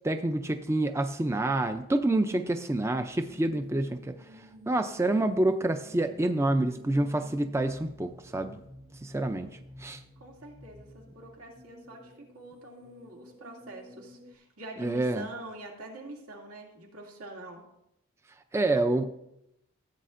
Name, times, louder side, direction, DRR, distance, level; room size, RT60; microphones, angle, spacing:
voice 1, 0.0-8.6 9.0-10.0 14.8-15.3 18.5-19.1, right 2 dB, 10° right, 8 dB, 0.3 m, -28 dB
sound 1, 3.1-14.4, equal, 40° right, 1.2 m, -52 dB
voice 2, 10.2-17.6, right 2 dB, 90° right, -1 dB, 2.4 m, -45 dB
15.0 x 8.4 x 2.5 m, 0.81 s
head